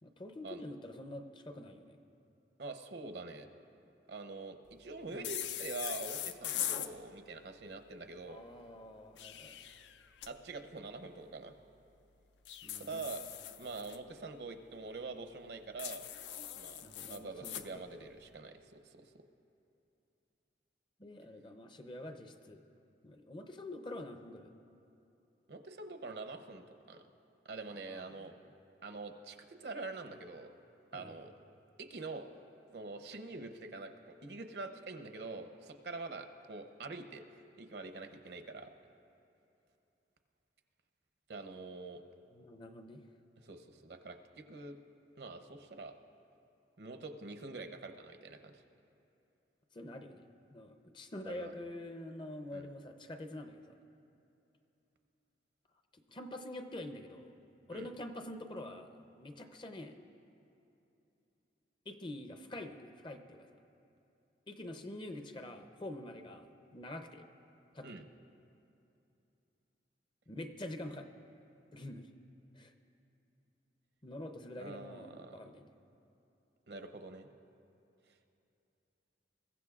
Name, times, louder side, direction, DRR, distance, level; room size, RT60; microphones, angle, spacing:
voice 1, 0.0-2.0 3.3-3.4 5.1-5.3 8.2-9.7 12.6-13.0 16.8-18.1 21.0-22.6 23.0-24.5 27.7-28.4 30.9-31.2 42.3-43.0 49.7-50.3 50.5-53.8 55.9-57.3 57.7-60.0 61.9-63.5 64.5-66.5 66.7-67.3 67.7-68.0 70.3-71.1 71.7-72.1 72.5-72.7 74.0-75.7, left 1 dB, 25° left, 6 dB, 0.6 m, -46 dB
voice 2, 2.6-3.5 4.1-8.4 10.3-11.5 12.8-13.2 13.6-16.1 16.6-16.8 17.1-19.1 25.5-27.0 27.4-28.3 28.8-30.5 30.9-31.3 31.8-32.3 32.7-37.2 37.5-38.7 41.3-42.0 43.4-44.8 45.2-46.0 46.8-48.6 51.3-51.5 52.5-52.7 57.7-57.9 67.8-68.1 74.6-75.4 76.7-77.3, right 3 dB, 65° right, 7 dB, 0.7 m, -45 dB
sound 1, 5.2-6.9 9.0-10.3 12.5-14.0 15.8-17.7, left 11 dB, 75° left, 0.5 m, -41 dB
22.0 x 15.0 x 2.4 m, 2.8 s
head